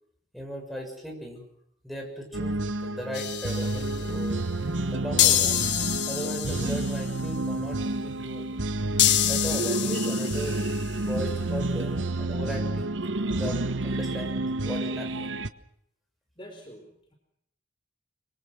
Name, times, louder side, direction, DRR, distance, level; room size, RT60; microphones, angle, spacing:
voice 1, 0.3-1.4 1.8-4.5 4.9-5.6 6.1-8.5 9.3-10.6 11.0-12.9 13.3-15.4, equal, ahead, 1 dB, 7.0 m, -37 dB
sound 1, 2.3-15.5, right 2 dB, 90° right, 1.2 m, -29 dB
sound 2, 3.1-4.1 5.2-7.1 9.0-10.9, left 12 dB, 70° left, 1.4 m, -26 dB
voice 2, 16.4-17.1, equal, 25° left, 3 dB, 4.6 m, -47 dB
25.0 x 24.0 x 6.3 m, 0.74 s
head